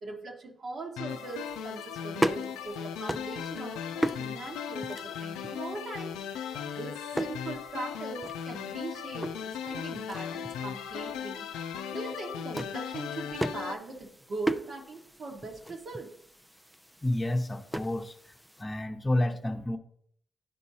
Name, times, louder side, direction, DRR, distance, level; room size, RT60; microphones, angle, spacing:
voice 1, 0.0-3.8 4.2-6.2 6.6-11.5 11.9-16.1, right 3 dB, 60° right, 0 dB, 1.7 m, -40 dB
sound 1, 1.0-13.7, left 8 dB, 90° left, 0.4 m, -37 dB
sound 2, 1.1-18.7, right 1 dB, 5° right, 0.5 m, -38 dB
voice 2, 17.0-18.3 18.6-19.8, left 1 dB, 25° left, 5 dB, 0.9 m, -30 dB
11.5 x 4.6 x 2.8 m, 0.65 s
supercardioid pair, 50°, 0 cm